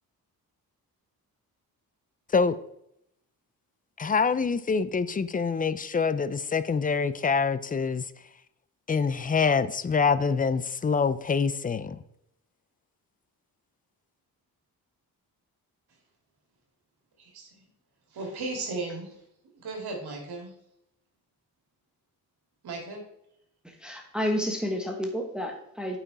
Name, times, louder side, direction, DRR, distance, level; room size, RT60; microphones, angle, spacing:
voice 1, 4.0-8.0 8.9-12.0, left 5 dB, 25° left, 14 dB, 0.4 m, -25 dB
voice 2, 17.2-17.7 18.1-19.1 19.5-20.5 22.6-23.0, right 3 dB, 80° right, 1 dB, 2.7 m, -36 dB
voice 3, 23.8-26.0, equal, ahead, 2 dB, 1.3 m, -30 dB
8.6 x 5.8 x 4.1 m, 0.78 s
cardioid pair, 110°, 38 cm